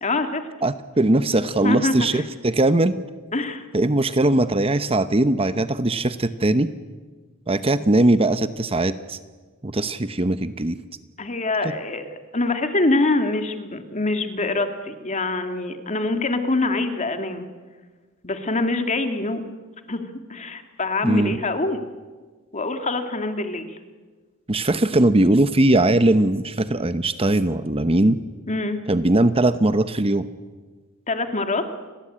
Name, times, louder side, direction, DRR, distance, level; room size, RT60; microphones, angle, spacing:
voice 1, 0.0-0.4 1.3-2.2 3.3-3.6 11.2-17.5 18.2-19.5 19.9-21.8 22.5-23.8 28.5-28.8 31.1-31.6, left 2 dB, 35° left, 7 dB, 2.3 m, -25 dB
voice 2, 0.6-2.9 3.7-6.7 7.5-9.2 9.6-10.8 11.6-11.7 21.0-21.4 24.5-28.2 28.9-30.3, right 2 dB, 25° right, 12 dB, 0.9 m, -20 dB
30.0 x 22.0 x 8.8 m, 1.4 s
head